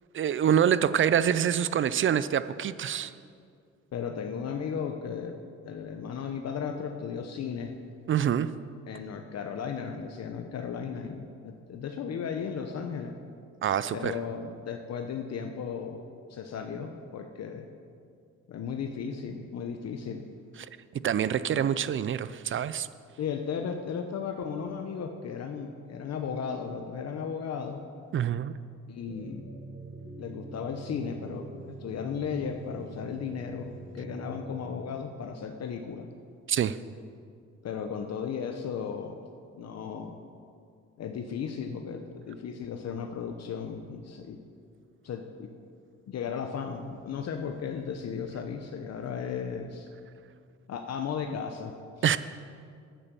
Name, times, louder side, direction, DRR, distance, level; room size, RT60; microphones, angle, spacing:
voice 1, 0.1-3.1 8.1-8.5 13.6-14.1 21.0-22.9 28.1-28.5 36.5-36.8 52.0-52.2, right 9 dB, 45° right, 15 dB, 0.4 m, -26 dB
voice 2, 3.9-7.7 8.9-13.1 13.9-17.7 18.5-20.2 23.2-27.8 28.9-29.4 30.2-33.7 33.9-36.1 37.6-39.2 39.6-40.2 41.0-44.4 45.0-45.5 46.1-49.9 50.7-51.7, left 6 dB, 55° left, 5 dB, 0.8 m, -35 dB
sound 1, 29.1-34.6, right 2 dB, 5° right, 1.9 m, -44 dB
9.0 x 8.4 x 6.8 m, 2.3 s
cardioid pair, 90°, 30 cm